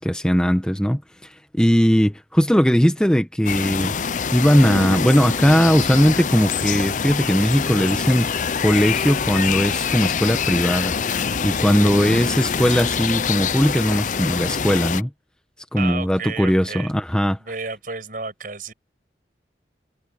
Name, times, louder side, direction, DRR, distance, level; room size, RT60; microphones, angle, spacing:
voice 1, 0.0-3.9 4.3-8.3 8.6-10.9 11.4-15.1 15.7-17.4, equal, 5° left, 1.2 m, -19 dB
sound 1, 3.5-15.0, left 6 dB, 45° left, 0.5 m, -24 dB
voice 2, 15.8-16.9 17.4-18.7, right 4 dB, 50° right, 6.0 m, -32 dB
head